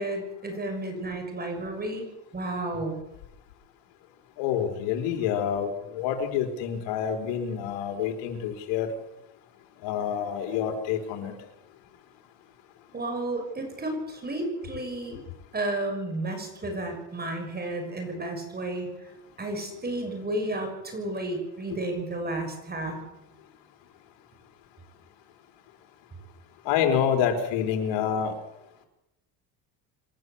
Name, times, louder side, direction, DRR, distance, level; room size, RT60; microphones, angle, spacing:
voice 1, 0.0-2.1 2.3-3.0 12.9-15.2 15.5-18.9 19.4-23.0, right 2 dB, 20° right, 4 dB, 6.2 m, -32 dB
voice 2, 4.4-8.9 9.8-11.3 26.6-28.3, left 8 dB, 80° left, 4 dB, 4.3 m, -27 dB
27.0 x 12.5 x 8.2 m, 0.91 s
cardioid pair, 125°, 44 cm